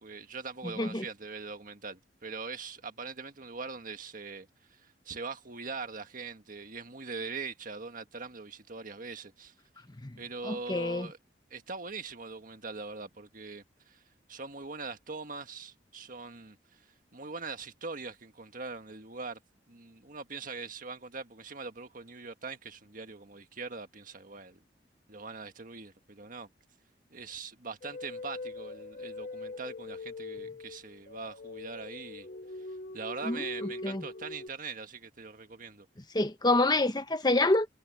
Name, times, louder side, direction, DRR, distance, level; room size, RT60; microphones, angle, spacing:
voice 1, 0.0-4.5 5.1-9.5 10.2-11.2 11.5-14.0 14.3-16.8 17.1-19.4 19.7-24.6 25.1-26.5 27.1-32.3 32.9-35.9, right 4 dB, 50° right, 1.7 m, -42 dB
voice 2, 0.6-1.0 10.0-10.2 10.4-11.1 33.2-33.4 33.8-34.0 36.1-37.7, left 2 dB, 25° left, 1.2 m, -27 dB
sound 1, 27.8-34.5, left 2 dB, 50° left, 0.7 m, -42 dB
head